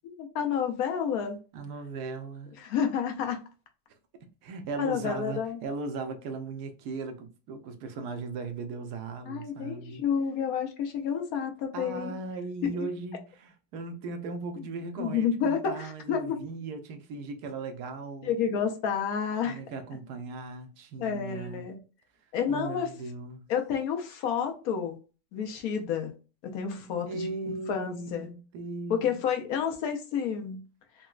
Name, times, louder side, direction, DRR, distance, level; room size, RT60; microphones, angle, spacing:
voice 1, 0.0-1.4 2.6-3.4 4.8-5.6 9.3-12.1 12.6-12.9 14.6-14.7 15.0-16.4 18.2-19.6 21.0-21.8 22.3-22.9 23.5-25.0 25.3-26.1 26.4-27.3 27.7-28.3 28.9-30.7, left 7 dB, 70° left, 1.1 m, -30 dB
voice 2, 1.5-2.6 4.4-10.0 11.7-18.4 19.5-21.7 22.5-23.5 26.9-29.2, right 3 dB, 85° right, 1.2 m, -38 dB
3.9 x 2.2 x 2.3 m
omnidirectional pair, 1.7 m